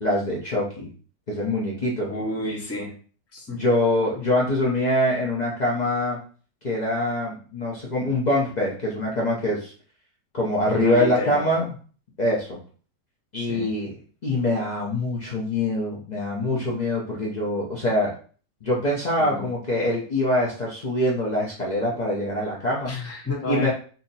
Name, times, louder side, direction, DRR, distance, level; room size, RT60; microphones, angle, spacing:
voice 1, 0.0-0.9 1.3-2.1 3.5-6.2 6.6-9.7 10.3-11.7 12.2-12.6 13.3-13.9 14.2-18.1 18.6-22.9 23.5-23.7, left 1 dB, 85° left, -4 dB, 0.3 m, -24 dB
voice 2, 2.1-2.9 3.3-3.6 10.7-11.5 13.4-13.7 19.2-19.5 22.8-23.7, left 2 dB, 20° left, -3 dB, 0.4 m, -30 dB
2.8 x 2.7 x 4.0 m, 0.41 s
omnidirectional pair, 1.9 m